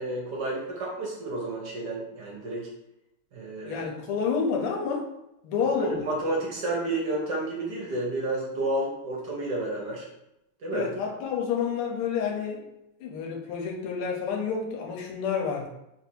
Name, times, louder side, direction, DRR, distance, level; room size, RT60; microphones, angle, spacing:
voice 1, 0.0-2.7 3.3-3.9 5.6-10.0 10.6-10.9, right 2 dB, 60° right, -3 dB, 1.3 m, -31 dB
voice 2, 3.7-5.1 5.4-6.0 10.7-12.7 13.0-15.7, left 6 dB, 80° left, 0 dB, 1.6 m, -29 dB
3.6 x 2.6 x 4.4 m, 0.84 s
omnidirectional pair, 2.4 m